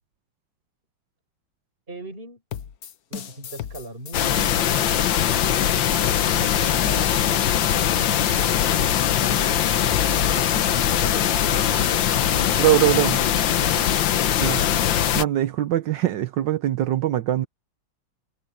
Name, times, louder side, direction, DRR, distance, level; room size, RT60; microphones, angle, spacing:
voice 1, 1.9-2.4 3.1-4.4 6.2-7.2 7.9-9.7 10.3-12.8 13.1-13.3 14.1-14.8, right 1 dB, 25° right, 5.8 m, -41 dB
sound 1, 2.5-12.4, left 9 dB, 55° left, 1.2 m, -35 dB
sound 2, 4.1-15.2, left 10 dB, 70° left, 1.6 m, -21 dB
sound 3, 6.6-8.3 8.6-12.6, left 6 dB, 85° left, 0.4 m, -36 dB
voice 2, 12.6-13.1 14.4-14.6 15.1-17.5, right 13 dB, 70° right, 1.4 m, -22 dB
omnidirectional pair, 2.2 m